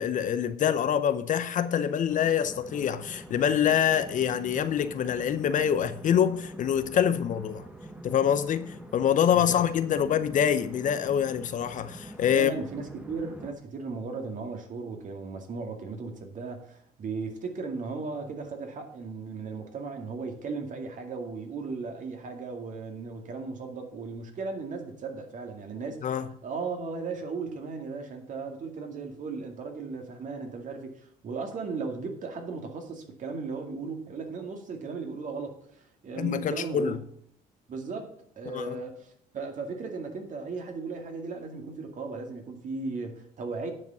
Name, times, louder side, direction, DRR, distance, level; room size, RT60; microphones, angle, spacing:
voice 1, 0.0-7.6 8.0-12.5 26.0-26.3 36.2-37.0 38.5-38.8, left 9 dB, 50° left, 0.7 m, -25 dB
sound 1, 2.1-13.5, right 1 dB, 5° right, 1.1 m, -45 dB
voice 2, 12.3-26.1 26.4-37.0 37.7-43.7, right 4 dB, 50° right, 2.2 m, -36 dB
9.6 x 5.2 x 6.8 m
cardioid pair, 110°, 17 cm